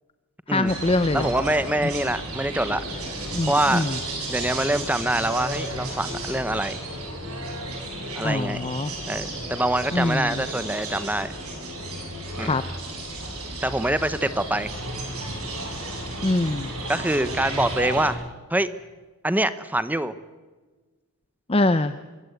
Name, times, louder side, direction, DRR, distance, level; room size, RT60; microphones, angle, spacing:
voice 1, 0.5-1.3 3.3-4.0 8.2-8.9 9.9-10.4 12.4-12.6 16.2-16.7 21.5-21.9, left 2 dB, 25° left, 11 dB, 0.7 m, -23 dB
sound 1, 0.7-18.1, right 1 dB, 85° right, 7.2 m, -33 dB
voice 2, 1.1-2.8 3.4-3.8 4.3-6.8 8.2-8.7 9.1-11.4 12.4-12.5 13.6-14.7 16.9-18.2 18.5-18.7 19.2-20.1, right 1 dB, 5° right, 13 dB, 0.9 m, -25 dB
25.0 x 22.5 x 8.1 m, 1.3 s
head